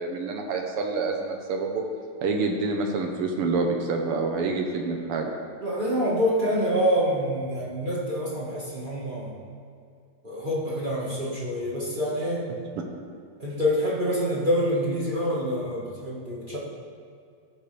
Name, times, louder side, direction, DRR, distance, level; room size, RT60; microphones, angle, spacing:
voice 1, 0.0-1.8 2.2-5.3, right 3 dB, 70° right, 3 dB, 1.3 m, -27 dB
voice 2, 5.6-9.4 10.2-12.5 13.4-16.6, equal, 35° right, -7 dB, 0.7 m, -26 dB
15.0 x 8.9 x 3.3 m, 2.3 s
omnidirectional pair, 3.6 m